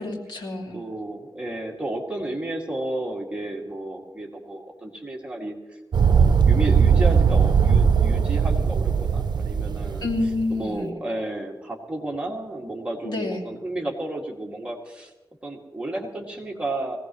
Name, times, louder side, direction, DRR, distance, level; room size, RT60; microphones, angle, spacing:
voice 1, 0.0-0.8 10.0-11.0 13.0-13.5, left 2 dB, 75° left, -1 dB, 2.6 m, -28 dB
voice 2, 0.7-5.8 6.1-10.0 10.5-15.1 15.4-17.0, right 1 dB, 15° right, -1 dB, 2.4 m, -32 dB
sound 1, 5.9-10.4, right 6 dB, 65° right, 0.6 m, -19 dB
22.5 x 17.5 x 3.2 m, 1.1 s
wide cardioid pair, 110°, 8 cm